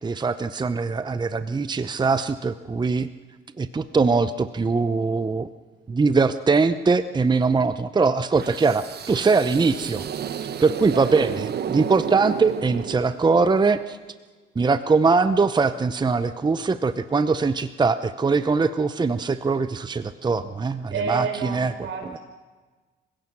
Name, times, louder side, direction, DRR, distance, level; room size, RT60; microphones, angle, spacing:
voice 1, 0.0-3.1 3.6-5.5 5.9-10.1 10.6-14.0 14.6-21.7, right 4 dB, 20° right, 12 dB, 0.7 m, -22 dB
sound 1, 8.4-13.4, right 8 dB, 55° right, 0.9 m, -32 dB
voice 2, 10.9-11.4 20.9-22.2, right 5 dB, 75° right, 3 dB, 5.7 m, -30 dB
27.0 x 16.5 x 6.1 m, 1.3 s
cardioid pair, 90°, 20 cm